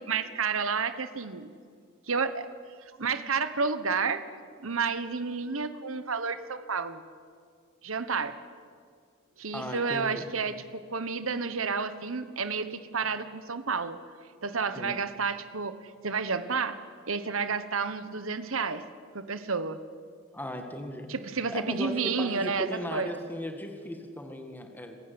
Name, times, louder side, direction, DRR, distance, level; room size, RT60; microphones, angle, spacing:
voice 1, 0.0-1.5 2.1-2.5 3.0-4.2 4.6-7.0 7.8-8.3 9.4-14.0 14.4-16.8 17.1-18.8 19.1-19.8 21.1-23.1, right 5 dB, 75° right, 12 dB, 1.3 m, -30 dB
voice 2, 9.5-10.3 14.8-14.9 20.3-21.1 21.5-25.0, equal, 10° left, 4 dB, 2.0 m, -37 dB
26.0 x 15.0 x 9.7 m, 2.1 s
head